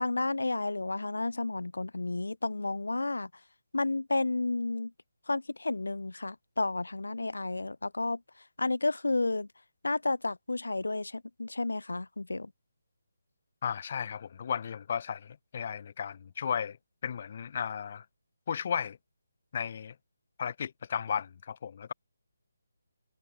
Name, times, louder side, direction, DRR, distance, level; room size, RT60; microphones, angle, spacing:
voice 1, 0.0-3.3 3.7-4.9 5.3-8.2 8.6-9.5 9.8-12.5, left 2 dB, 75° left, 2.7 m, -31 dB
voice 2, 13.6-16.8 17.0-18.0 18.5-19.0 19.5-19.9 20.4-21.9, left 7 dB, 40° left, 2.3 m, -34 dB
figure-of-eight pair, 150°, 0 cm